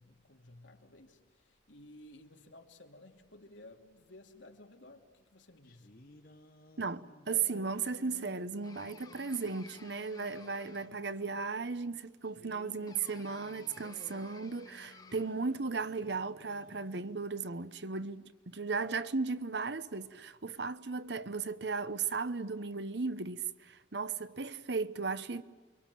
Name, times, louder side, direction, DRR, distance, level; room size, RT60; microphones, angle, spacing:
voice 1, 0.0-6.2, left 1 dB, 90° left, 2.8 m, -56 dB
sound 1, 5.6-11.4 12.2-17.3, left 1 dB, 50° left, 1.7 m, -57 dB
voice 2, 6.8-25.4, right 4 dB, 65° right, 1.0 m, -36 dB
sound 2, 8.6-11.2 12.9-15.5, left 4 dB, 20° left, 1.3 m, -56 dB
29.0 x 24.0 x 7.7 m
head